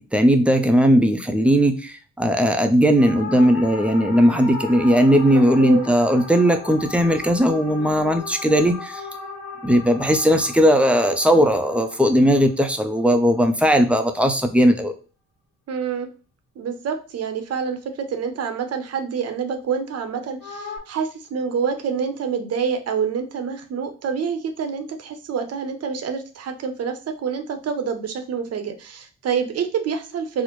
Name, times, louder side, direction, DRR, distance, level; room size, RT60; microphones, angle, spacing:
voice 1, 0.0-9.0 9.6-14.9, equal, 5° right, 6 dB, 0.5 m, -18 dB
sound 1, 3.0-13.5 20.4-20.8, left 4 dB, 60° left, 1.0 m, -36 dB
voice 2, 5.3-5.9 15.7-16.1 16.6-30.4, right 6 dB, 55° right, 7 dB, 0.8 m, -27 dB
4.2 x 2.1 x 3.1 m, 0.35 s
cardioid pair, 90°, 30 cm